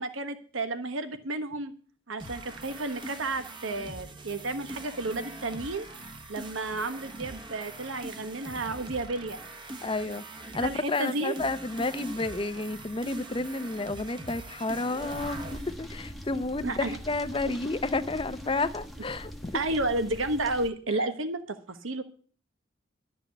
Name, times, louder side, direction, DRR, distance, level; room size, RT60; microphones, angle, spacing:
voice 1, 0.0-1.7 2.1-9.4 10.6-11.3 16.6-17.0 19.5-22.0, right 2 dB, 80° right, 1.2 m, -32 dB
sound 1, 2.2-15.8, right 2 dB, 25° right, 1.1 m, -43 dB
voice 2, 9.8-19.6, left 2 dB, 25° left, 0.6 m, -31 dB
sound 2, 15.0-20.7, equal, ahead, 1.1 m, -43 dB
12.5 x 6.0 x 8.2 m
head